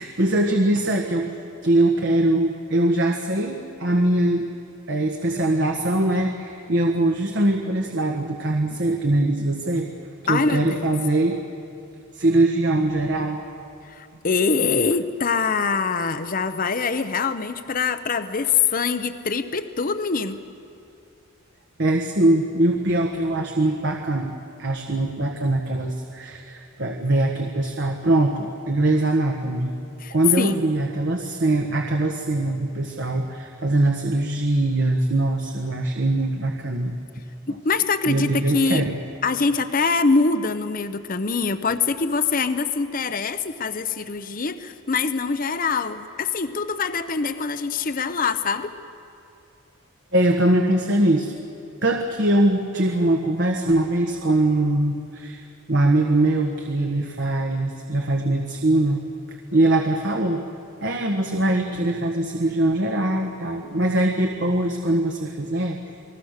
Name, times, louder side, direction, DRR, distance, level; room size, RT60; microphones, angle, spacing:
voice 1, 0.0-4.5 4.9-9.9 10.2-11.4 12.1-13.4 21.8-29.7 30.1-37.0 37.5-37.6 38.0-39.0 50.1-51.3 51.8-60.5 60.8-65.8, right 1 dB, 60° right, 3 dB, 1.4 m, -22 dB
voice 2, 10.3-10.9 13.8-20.4 30.0-30.6 37.5-38.9 39.2-48.7, left 4 dB, 40° left, 11 dB, 0.8 m, -24 dB
29.5 x 20.5 x 6.7 m, 2.5 s
head